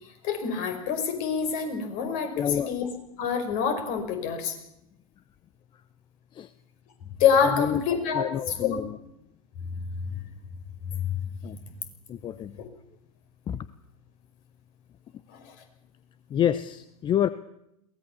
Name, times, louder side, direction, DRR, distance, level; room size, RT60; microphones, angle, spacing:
voice 1, 0.0-2.9 3.2-4.6 7.2-8.8 10.1-10.2 10.9-11.2 15.3-15.6, left 7 dB, 45° left, 7 dB, 5.3 m, -26 dB
voice 2, 2.4-2.7 6.3-6.5 7.6-7.8 8.1-9.0 11.4-11.6 12.1-12.5 13.5-13.6 16.3-17.3, left 10 dB, 25° left, 15 dB, 0.9 m, -27 dB
22.5 x 18.5 x 7.2 m, 0.80 s
hypercardioid pair, 100°, 19 cm